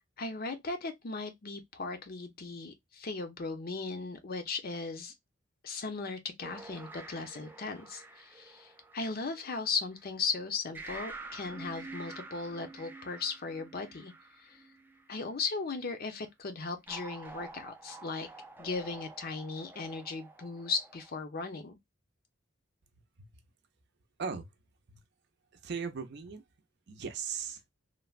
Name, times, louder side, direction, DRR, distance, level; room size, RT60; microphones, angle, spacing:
voice 1, 0.2-5.1 5.6-14.6 15.1-18.3 18.6-21.8, left 4 dB, 50° left, 0.6 m, -37 dB
sound 1, 6.4-10.0 10.7-15.2 16.9-21.2, right 3 dB, 10° right, 0.4 m, -48 dB
voice 2, 25.6-26.4 26.9-27.6, right 6 dB, 60° right, 0.5 m, -38 dB
3.2 x 2.1 x 2.3 m
head